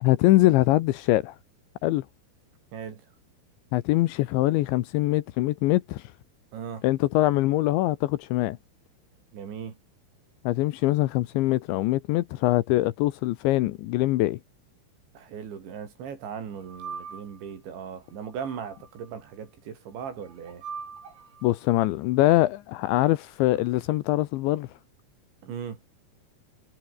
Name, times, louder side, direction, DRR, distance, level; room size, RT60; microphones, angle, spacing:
voice 1, 0.0-1.3 1.8-2.0 3.7-6.0 6.8-8.6 10.5-14.4 21.4-24.7, left 17 dB, 80° left, 2.9 m, -23 dB
voice 2, 2.7-3.0 6.5-6.9 9.3-9.8 15.1-20.6 23.5-23.7 25.4-25.8, right 7 dB, 60° right, 6.1 m, -38 dB
sound 1, 16.6-17.5 18.2-19.1 20.0-21.5, right 6 dB, 80° right, 9.4 m, -41 dB
omnidirectional pair, 5.9 m